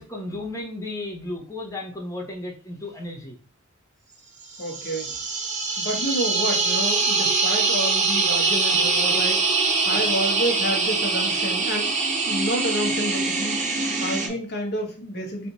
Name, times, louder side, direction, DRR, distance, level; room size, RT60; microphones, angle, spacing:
voice 1, 0.0-3.4 5.1-5.2 9.9-10.1 14.2-14.4, left 2 dB, 15° left, 0 dB, 0.9 m, -34 dB
sound 1, 4.5-14.3, right 4 dB, 35° right, 0.7 m, -23 dB
voice 2, 4.6-5.1 5.8-9.4 9.8-12.0 12.3-13.7 14.0-15.5, equal, 45° left, 1 dB, 1.1 m, -29 dB
3.3 x 2.7 x 4.0 m, 0.38 s
head